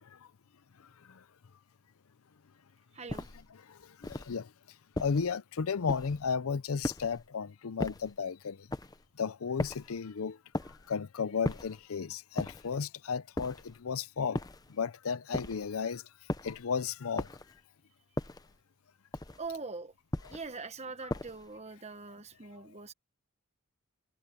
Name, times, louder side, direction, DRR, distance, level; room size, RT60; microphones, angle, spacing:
voice 1, 2.9-3.3 19.4-19.9 20.3-22.9, right 4 dB, 30° right, 1.1 m, -42 dB
sound 1, 3.1-3.5 4.0-4.4 5.0-5.3 5.9-6.3 6.8-7.3 7.8-8.2 8.7-9.1 9.6-10.0 10.5-10.9 11.4-11.8 12.4-12.8 13.4-13.8 14.4-14.7 15.3-15.7 16.3-16.6 17.2-17.6 18.2-18.6 19.1-19.5 20.1-20.5 21.1-21.5, left 1 dB, 15° left, 0.7 m, -37 dB
voice 2, 3.7-4.5 5.0-8.7 9.2-10.4 10.7-14.4 14.7-16.0 16.4-17.3, left 6 dB, 70° left, 0.5 m, -34 dB
head